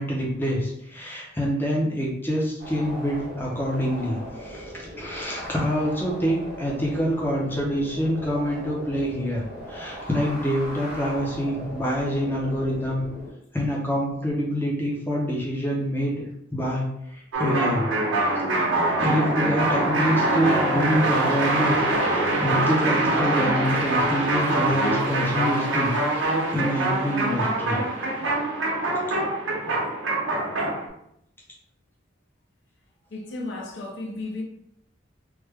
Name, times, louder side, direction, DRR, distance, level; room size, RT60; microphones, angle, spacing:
voice 1, 0.0-13.0 13.5-16.2 16.5-17.9 19.0-27.8, equal, 10° left, 0.6 m, -26 dB
sound 1, 2.6-13.3, equal, 85° left, 1.4 m, -39 dB
sound 2, 17.3-30.9, right 2 dB, 90° right, 0.8 m, -24 dB
voice 2, 33.1-34.4, left 2 dB, 70° left, 0.6 m, -33 dB
3.1 x 2.1 x 3.4 m
head